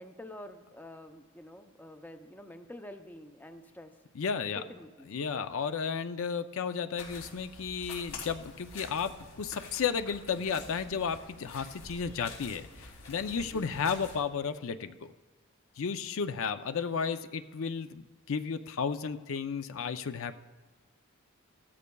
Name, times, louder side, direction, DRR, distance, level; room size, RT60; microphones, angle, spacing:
voice 1, 0.0-3.9 4.6-5.1 5.4-5.5 13.5-13.7, left 1 dB, 10° left, 6 dB, 0.5 m, -47 dB
voice 2, 4.1-4.6 5.1-9.1 9.4-15.1 15.8-20.4, left 6 dB, 65° left, 10 dB, 0.5 m, -33 dB
sound 1, 7.0-14.2, left 3 dB, 85° left, 2.9 m, -47 dB
16.0 x 13.5 x 2.3 m, 1.3 s
head